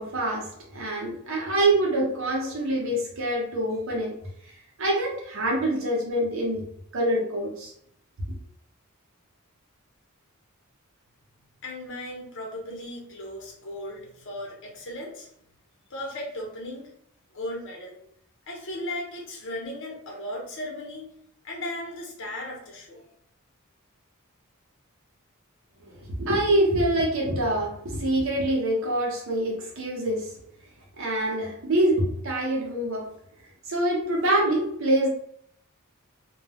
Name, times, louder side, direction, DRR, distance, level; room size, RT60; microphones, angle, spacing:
voice 1, 0.0-4.2 4.8-6.7 6.9-7.7 25.8-30.4 31.0-33.1 33.7-35.1, right 1 dB, 65° right, -2 dB, 0.8 m, -25 dB
voice 2, 11.6-15.3 15.9-16.9 17.3-18.0 18.5-21.1 21.4-23.0, left 1 dB, 60° left, -1 dB, 0.9 m, -36 dB
2.2 x 2.2 x 3.3 m, 0.70 s
head